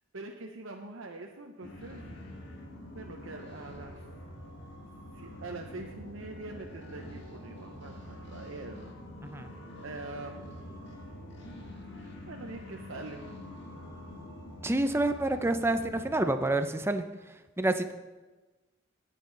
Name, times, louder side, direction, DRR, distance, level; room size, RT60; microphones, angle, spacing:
voice 1, 0.1-2.1 2.9-4.0 5.1-8.9 9.8-10.7 12.0-13.3, right 2 dB, 75° right, 2 dB, 0.9 m, -44 dB
sound 1, 1.6-16.1, left 1 dB, 60° left, 1.9 m, -46 dB
voice 2, 14.6-17.0 17.6-17.9, right 2 dB, 10° right, 8 dB, 0.6 m, -28 dB
18.0 x 7.6 x 3.9 m, 1.2 s
head